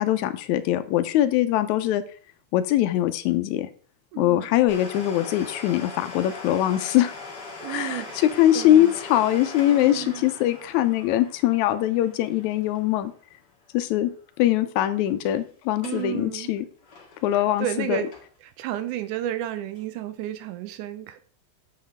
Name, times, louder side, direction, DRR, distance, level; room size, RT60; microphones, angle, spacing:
voice 1, 0.0-2.0 2.5-3.7 4.2-7.1 7.7-13.1 13.7-14.1 14.4-16.7 17.2-18.0, left 13 dB, 80° left, 1.7 m, -22 dB
voice 2, 4.1-4.5 7.6-8.3 8.5-8.9 9.7-10.2 15.8-16.5 17.3-18.1 18.4-21.2, right 12 dB, 80° right, 1.9 m, -32 dB
Domestic sounds home sounds, 4.7-14.1 14.4-14.5 15.1-15.4 15.7-16.1 16.4-18.5 19.0-19.1 19.8-19.9, left 3 dB, 35° left, 2.0 m, -41 dB
7.8 x 7.2 x 3.6 m
omnidirectional pair, 3.9 m